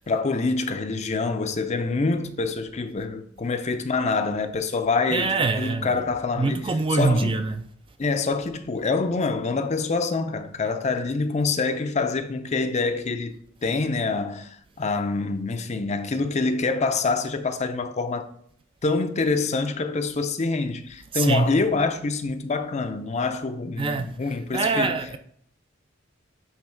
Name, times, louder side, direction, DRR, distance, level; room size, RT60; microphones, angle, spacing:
voice 1, 0.0-5.3 5.6-7.3 8.0-13.3 13.6-18.3 18.8-25.0, left 3 dB, 35° left, 0.5 m, -26 dB
voice 2, 5.1-6.0 6.4-7.6 21.1-21.5 23.8-24.1 24.5-25.2, right 3 dB, 25° right, 0.4 m, -24 dB
7.5 x 3.4 x 4.4 m
head